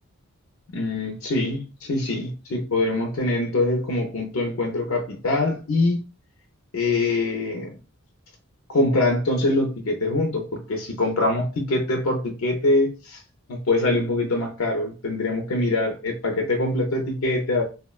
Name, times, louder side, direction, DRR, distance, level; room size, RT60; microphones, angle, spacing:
voice 1, 0.7-6.0 6.7-7.7 8.7-13.2 13.5-17.6, left 2 dB, 70° left, 0.5 m, -24 dB
3.4 x 2.1 x 2.3 m
head